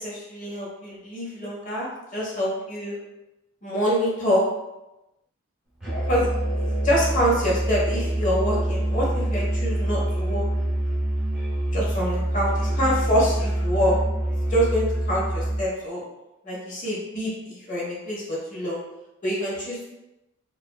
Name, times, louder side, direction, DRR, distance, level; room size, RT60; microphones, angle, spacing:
voice 1, 0.0-1.9 2.1-2.9 3.6-4.4 6.1-10.4 11.7-14.0 14.5-16.0 16.4-18.8 19.2-19.9, equal, 40° left, -5 dB, 0.8 m, -26 dB
Musical instrument, 5.8-15.7, right 1 dB, 5° right, 0.8 m, -25 dB
2.7 x 2.4 x 2.3 m, 0.96 s
head